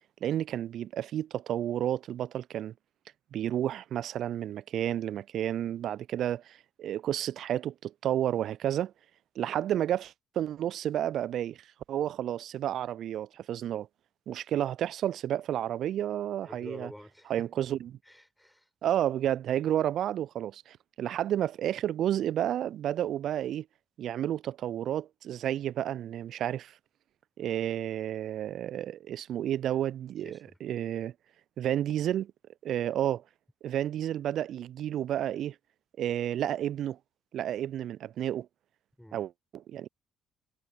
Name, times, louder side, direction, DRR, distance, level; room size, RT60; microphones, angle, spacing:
voice 1, 0.2-2.7 3.3-8.9 9.4-11.6 11.9-13.9 14.3-16.9 17.3-17.9 18.8-23.7 24.0-26.7 27.4-31.1 31.6-32.3 32.6-33.2 33.6-35.5 36.0-37.0 37.3-38.5 39.1-39.9, right 11 dB, 55° right, 0.4 m, -31 dB
voice 2, 16.4-17.6 18.0-18.7 30.2-30.6 39.0-39.3, equal, 5° left, 6.4 m, -48 dB
figure-of-eight pair, 45°, 0 cm